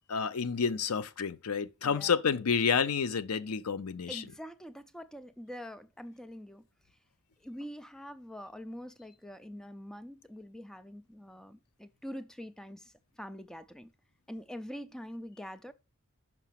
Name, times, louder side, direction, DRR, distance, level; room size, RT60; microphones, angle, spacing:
voice 1, 0.1-4.3, left 6 dB, 85° left, 0.6 m, -29 dB
voice 2, 1.8-2.1 4.1-6.6 7.4-13.9 14.3-15.7, equal, 5° left, 0.3 m, -45 dB
6.0 x 5.8 x 5.7 m
head